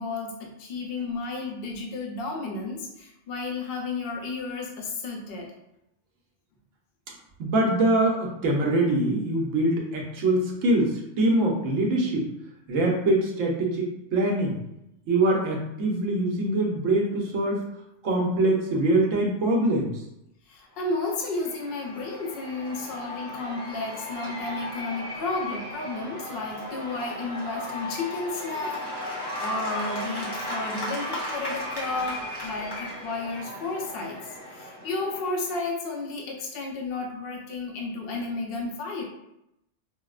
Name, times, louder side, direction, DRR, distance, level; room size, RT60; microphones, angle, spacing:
voice 1, 0.0-5.5 20.5-29.0 29.4-39.0, left 3 dB, 55° left, 0 dB, 0.8 m, -32 dB
voice 2, 7.4-12.3 12.7-14.6 15.1-17.6 18.0-19.9, right 1 dB, 80° right, -1 dB, 1.1 m, -23 dB
Cheering / Applause / Crowd, 20.9-35.6, left 1 dB, 25° left, 0.8 m, -36 dB
5.0 x 2.0 x 2.4 m, 0.84 s
omnidirectional pair, 1.3 m